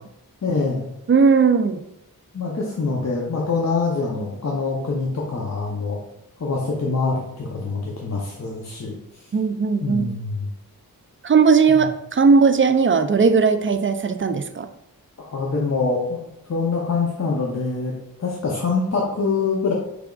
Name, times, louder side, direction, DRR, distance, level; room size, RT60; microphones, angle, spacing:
voice 1, 0.4-0.9 2.3-6.0 6.4-9.3 9.8-10.5 11.7-11.8 15.2-19.7, left 4 dB, 45° left, -3 dB, 0.8 m, -25 dB
voice 2, 1.1-1.8 9.3-10.1 11.2-14.7, right 5 dB, 35° right, 8 dB, 0.4 m, -17 dB
4.9 x 3.4 x 2.4 m, 0.81 s
cardioid pair, 50°, 37 cm